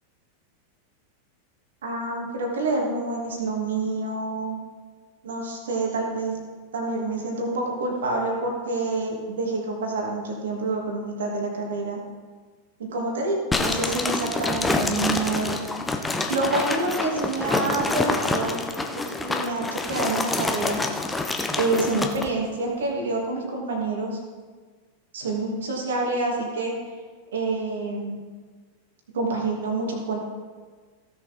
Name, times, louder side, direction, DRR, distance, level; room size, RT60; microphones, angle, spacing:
voice 1, 1.8-4.6 5.2-6.4 6.7-12.0 12.9-15.7 16.3-18.6 18.9-20.8 21.5-24.2 25.1-26.7 27.3-28.2 29.1-30.2, right 2 dB, 65° right, 0 dB, 2.8 m, -27 dB
sound 1, 13.5-22.3, left 3 dB, 10° left, 1.1 m, -27 dB
16.5 x 7.4 x 4.6 m, 1.5 s
figure-of-eight pair, 90°, 0 cm